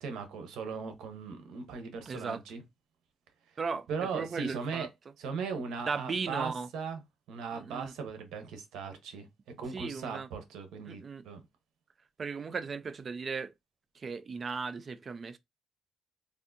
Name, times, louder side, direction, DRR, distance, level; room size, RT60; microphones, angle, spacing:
voice 1, 0.0-2.6 3.9-4.9 5.2-7.0 7.3-9.3 9.6-11.4, right 5 dB, 85° right, 0.8 m, -38 dB
voice 2, 2.1-2.4 3.6-4.9 5.9-6.7 7.5-7.9 9.7-10.3 10.9-11.2 12.2-13.5 13.9-15.4, right 5 dB, 40° right, 0.4 m, -36 dB
3.5 x 2.5 x 2.5 m
cardioid pair, 90°, 0 cm